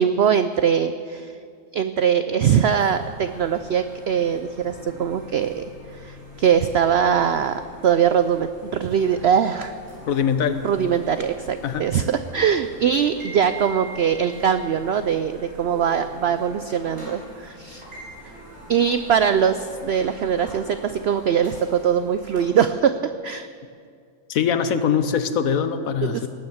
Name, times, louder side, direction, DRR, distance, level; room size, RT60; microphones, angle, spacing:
voice 1, 0.0-1.4 1.7-5.6 5.9-9.7 10.6-17.8 18.2-18.3 18.7-23.5 26.0-26.3, right 8 dB, 85° right, 10 dB, 0.5 m, -22 dB
sound 1, 2.6-22.4, right 1 dB, 65° right, 5.1 m, -43 dB
voice 2, 10.1-10.7 11.6-11.9 24.3-26.3, left 7 dB, 65° left, 10 dB, 1.2 m, -22 dB
18.5 x 9.6 x 7.2 m, 2.3 s
omnidirectional pair, 1.6 m